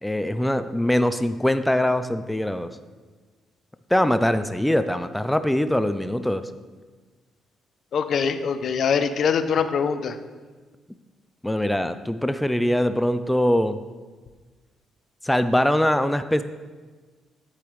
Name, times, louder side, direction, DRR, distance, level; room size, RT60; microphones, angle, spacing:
voice 1, 0.0-2.7 3.9-6.5 11.4-13.8 15.2-16.4, left 1 dB, 5° left, 11 dB, 0.3 m, -22 dB
voice 2, 7.9-10.2, left 6 dB, 60° left, 11 dB, 0.5 m, -23 dB
8.9 x 8.3 x 3.1 m, 1.4 s
cardioid pair, 90°, 0 cm